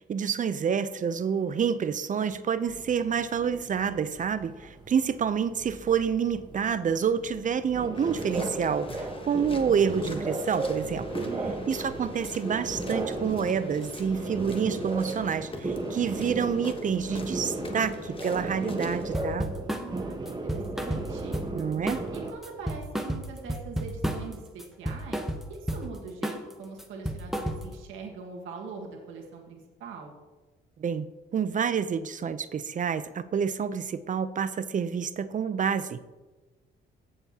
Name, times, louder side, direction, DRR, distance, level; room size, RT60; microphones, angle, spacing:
voice 1, 0.1-11.1 11.7-19.5 21.5-22.0 30.8-36.0, right 7 dB, 40° right, 13 dB, 0.6 m, -28 dB
sound 1, 2.7-22.3, right 2 dB, 20° right, 1.2 m, -36 dB
sound 2, 7.9-19.1, left 2 dB, 25° left, 1.2 m, -42 dB
voice 2, 11.2-11.7 19.7-21.4 22.1-30.2, right 4 dB, 85° right, 0 dB, 1.7 m, -42 dB
sound 3, 19.1-19.9 20.3-21.6 21.9-22.2 22.4-24.3 24.6-25.9 26.2-26.5 26.8-27.8, right 1 dB, ahead, 0.9 m, -32 dB
16.5 x 6.9 x 2.9 m, 1.2 s
cardioid pair, 90°, 20 cm